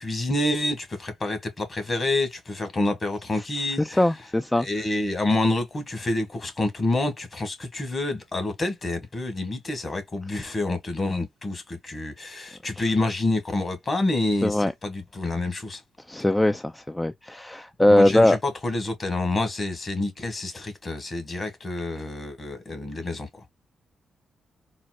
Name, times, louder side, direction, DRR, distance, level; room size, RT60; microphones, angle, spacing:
voice 1, 0.0-4.0 4.6-15.8 17.9-23.3, left 2 dB, 40° left, 1.5 m, -28 dB
voice 2, 3.8-4.7 12.8-12.9 14.4-14.7 16.1-18.4, left 1 dB, 15° left, 0.4 m, -21 dB
4.0 x 2.0 x 2.3 m
supercardioid pair, 55°, 0 cm